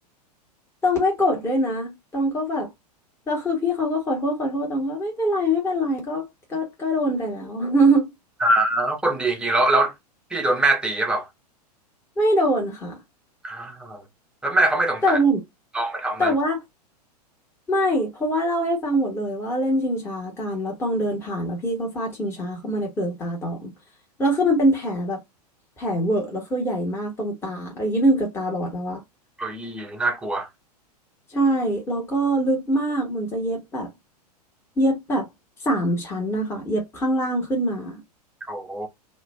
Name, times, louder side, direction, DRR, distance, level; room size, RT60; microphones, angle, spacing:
voice 1, 0.8-2.7 3.3-8.1 12.2-12.9 15.0-15.4 16.2-16.6 17.7-23.7 24.2-25.2 25.8-29.0 31.3-33.9 34.8-35.3 35.6-38.0, equal, 10° left, 1.0 m, -23 dB
voice 2, 8.4-9.9 10.3-11.3 13.4-14.0 14.4-15.2 15.7-16.3 29.4-30.5 38.5-38.9, right 2 dB, 5° right, 0.5 m, -23 dB
2.4 x 2.1 x 3.2 m
figure-of-eight pair, 95°, 21 cm